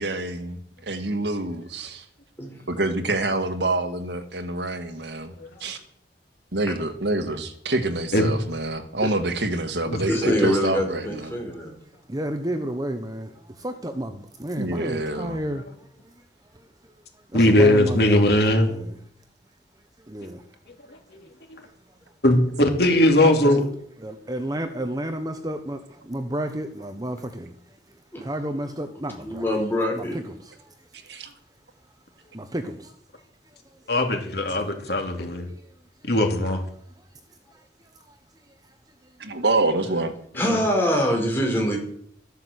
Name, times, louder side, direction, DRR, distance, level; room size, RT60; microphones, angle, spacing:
voice 1, 0.0-2.1 2.7-5.3 5.6-5.8 6.5-11.4 14.6-15.4 31.1-31.3 39.2-40.1, right 2 dB, 75° right, 8 dB, 1.9 m, -26 dB
voice 2, 10.1-11.7 28.1-28.2 29.2-30.2 40.4-41.8, equal, 10° left, 0 dB, 5.1 m, -24 dB
voice 3, 12.1-16.2 16.5-16.7 17.3-18.4 18.7-19.0 20.1-20.5 24.0-27.8 28.2-29.6 30.0-30.7 32.3-32.9 33.7-33.8 37.5-37.6 37.9-38.2 39.3-39.4, right 1 dB, 20° right, 7 dB, 1.0 m, -32 dB
voice 4, 17.3-18.7 22.2-23.6 33.9-35.5 36.0-36.6 40.4-40.6, left 1 dB, 60° left, 4 dB, 3.0 m, -19 dB
13.5 x 11.5 x 8.1 m, 0.64 s
head